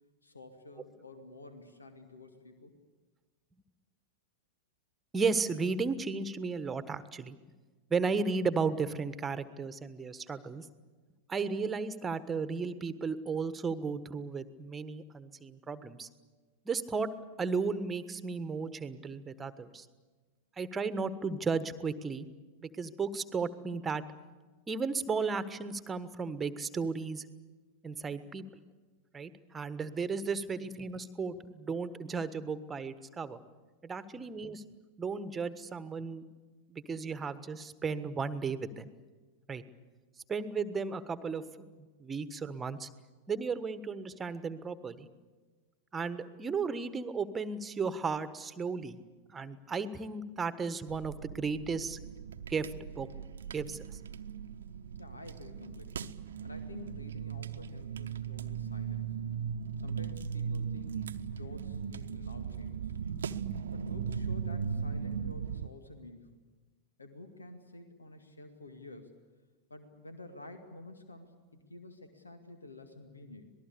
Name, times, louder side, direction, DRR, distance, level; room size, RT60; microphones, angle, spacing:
voice 1, 0.2-2.7 30.6-30.7 34.1-34.3 55.0-56.2 56.4-59.1 59.8-61.0 61.3-63.0 63.7-66.3 67.0-69.1 69.7-73.4, left 2 dB, 80° left, 7 dB, 2.2 m, -50 dB
voice 2, 5.1-7.4 7.9-10.7 11.3-16.1 16.6-17.1 17.4-19.9 20.6-22.3 22.6-24.0 24.7-27.2 27.8-28.4 29.1-33.4 33.8-34.6 35.0-36.2 36.7-38.9 39.5-39.6 40.3-41.4 42.0-42.9 43.3-45.1 45.9-49.0 49.3-52.0 52.5-53.1 53.5-53.8, right 4 dB, 15° right, 14 dB, 1.4 m, -34 dB
sound 1, 50.9-65.7, right 7 dB, 65° right, 0.9 m, -38 dB
26.0 x 19.5 x 8.5 m, 1.3 s
figure-of-eight pair, 90°, 0 cm